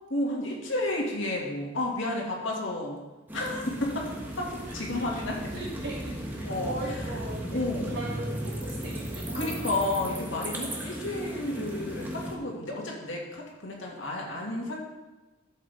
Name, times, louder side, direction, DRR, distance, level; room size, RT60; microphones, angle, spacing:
voice 1, 0.1-3.0 3.3-5.4 6.4-6.7 7.5-8.1 9.3-14.8, left 1 dB, 75° left, -2 dB, 2.3 m, -31 dB
sound 1, 3.3-12.4, right 1 dB, 10° right, 1.2 m, -36 dB
voice 2, 4.7-9.6 10.0-10.3 14.1-14.7, right 1 dB, 80° right, -12 dB, 3.6 m, -40 dB
11.5 x 7.5 x 3.6 m, 1.1 s
head